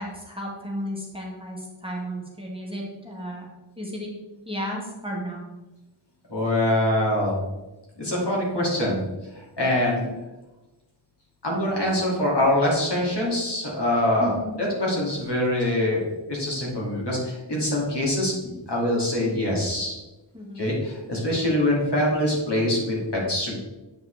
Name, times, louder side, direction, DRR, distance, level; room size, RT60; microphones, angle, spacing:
voice 1, 0.0-3.4 3.8-4.1 4.4-5.5 14.2-14.5 20.3-20.7, equal, 10° right, -3 dB, 1.5 m, -33 dB
voice 2, 6.3-7.4 8.0-9.0 9.6-10.0 11.4-16.0 16.3-18.3 18.7-20.0 20.6-23.6, left 1 dB, 55° left, -4 dB, 2.5 m, -24 dB
7.8 x 5.5 x 3.4 m, 1.1 s
wide cardioid pair, 65°, 48 cm